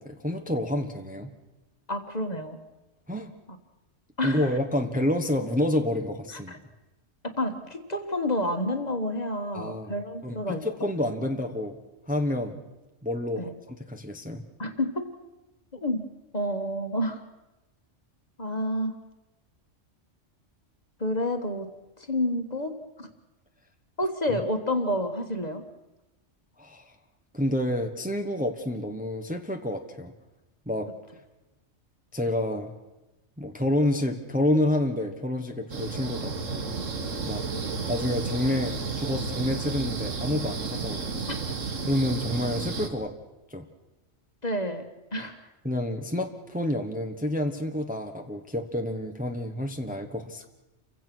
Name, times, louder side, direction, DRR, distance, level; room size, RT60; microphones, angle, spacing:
voice 1, 0.0-1.3 3.1-3.3 4.2-6.5 9.5-9.9 10.2-11.8 12.1-12.6 13.0-14.4 24.3-24.4 26.6-26.8 27.3-30.1 30.7-30.9 32.1-32.7 33.4-36.7 37.2-37.4 37.9-41.3 41.8-43.1 43.5-43.6 45.6-50.5, left 1 dB, 5° right, 4 dB, 1.1 m, -29 dB
voice 2, 1.9-2.6 4.2-4.6 6.3-6.6 7.4-10.7 11.0-11.3 13.4-13.5 14.6-15.1 15.7-16.1 16.3-17.2 18.4-19.0 21.0-21.7 22.0-23.1 24.0-25.6 41.3-41.4 44.4-44.8 45.1-45.5, left 1 dB, 35° left, 6 dB, 1.6 m, -29 dB
sound 1, 35.7-42.9, right 4 dB, 85° right, 2.0 m, -32 dB
29.0 x 16.0 x 6.2 m, 1.1 s
omnidirectional pair, 1.3 m